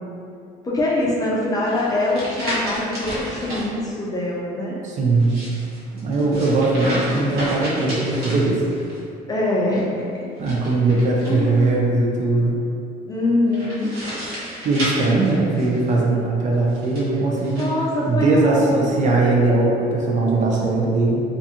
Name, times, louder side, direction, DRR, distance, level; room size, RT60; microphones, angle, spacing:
voice 1, 0.6-4.8 9.3-10.1 10.9-11.8 13.1-13.9 17.6-19.0, left 1 dB, 20° left, -6 dB, 0.6 m, -23 dB
sound 1, 1.7-3.7 5.1-9.0 10.4-11.7 13.5-15.9 16.7-17.7, equal, 65° right, 1.0 m, -31 dB
voice 2, 4.8-5.4 6.0-8.6 10.4-12.6 14.6-17.7 18.1-21.2, right 2 dB, 45° right, -3 dB, 0.5 m, -20 dB
2.5 x 2.2 x 2.7 m, 2.4 s
cardioid pair, 110°, 17 cm